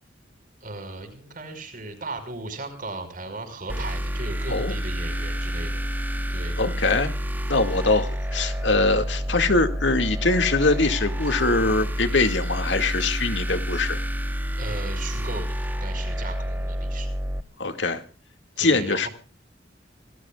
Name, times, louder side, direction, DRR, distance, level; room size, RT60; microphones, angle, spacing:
voice 1, 0.6-5.8 6.3-6.6 14.6-17.1 18.6-19.1, right 2 dB, 50° right, 9 dB, 5.3 m, -36 dB
sound 1, 3.7-17.4, equal, 10° right, 1.1 m, -29 dB
voice 2, 6.6-7.1 7.5-14.0 17.6-18.0 18.6-19.1, left 3 dB, 70° left, 7 dB, 2.2 m, -23 dB
27.0 x 18.5 x 2.4 m, 0.37 s
head